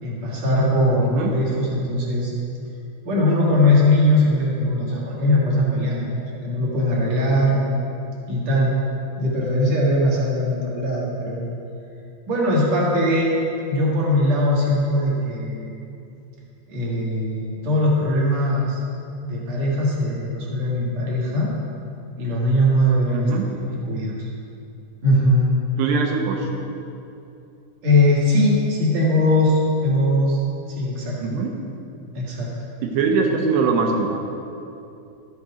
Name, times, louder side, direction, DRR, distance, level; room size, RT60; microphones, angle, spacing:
voice 1, 0.0-2.3 3.0-6.2 6.4-7.7 8.3-8.7 9.2-11.5 12.3-13.4 13.7-15.7 16.7-18.8 19.2-21.5 22.2-23.5 23.8-24.3 25.0-25.5 27.8-30.4 30.7-31.2 32.1-32.5, left 1 dB, 50° right, -5 dB, 2.5 m, -20 dB
voice 2, 1.0-1.3 23.1-23.5 25.8-26.5 31.2-31.5 32.8-34.1, right 5 dB, 75° right, 1 dB, 2.7 m, -22 dB
13.5 x 7.2 x 5.0 m, 2.7 s
omnidirectional pair, 5.2 m